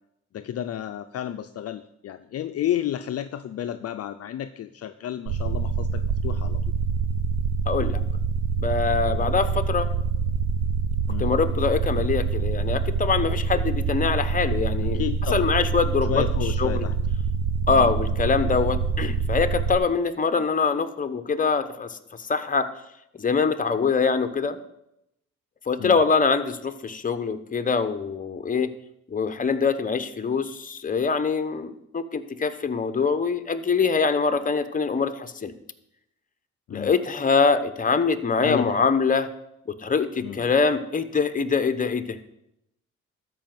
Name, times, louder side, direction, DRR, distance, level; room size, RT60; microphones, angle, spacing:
voice 1, 0.3-6.6 11.1-11.3 14.9-15.5 16.1-17.0 17.7-17.9 25.8-26.0 36.7-36.9 38.4-38.7 40.2-40.5, left 11 dB, 55° left, 9 dB, 0.5 m, -31 dB
sound 1, 5.3-19.8, right 5 dB, 80° right, 0.7 m, -26 dB
voice 2, 7.7-8.0 8.6-9.9 11.2-15.0 15.3-16.2 16.6-16.9 17.7-22.0 22.3-22.7 23.2-24.6 25.7-28.7 29.1-35.5 36.7-39.3 39.8-42.2, left 5 dB, 25° left, 10 dB, 1.0 m, -24 dB
13.0 x 4.9 x 7.7 m, 0.80 s
cardioid pair, 90°, 30 cm